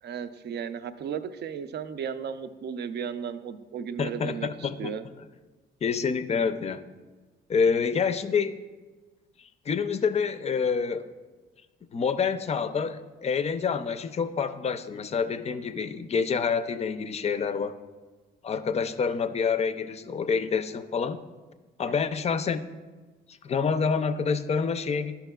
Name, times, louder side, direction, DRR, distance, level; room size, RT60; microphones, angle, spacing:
voice 1, 0.0-5.0, right 7 dB, 60° right, 11 dB, 0.5 m, -35 dB
voice 2, 4.0-4.9 5.8-6.8 7.5-8.6 9.4-11.1 11.9-17.8 18.4-21.2 21.8-22.7 23.4-25.1, left 6 dB, 35° left, 11 dB, 0.4 m, -27 dB
11.5 x 5.7 x 2.3 m, 1.3 s
cardioid pair, 90°, 20 cm